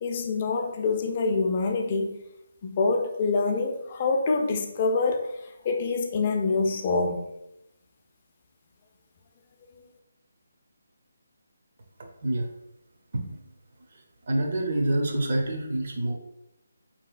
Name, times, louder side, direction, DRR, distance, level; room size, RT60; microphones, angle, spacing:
voice 1, 0.0-2.2 2.6-7.2, left 3 dB, 35° left, 0.3 m, -26 dB
voice 2, 14.3-16.1, right 1 dB, 55° right, 0.7 m, -27 dB
3.1 x 2.8 x 2.4 m
figure-of-eight pair, 160°, 0 cm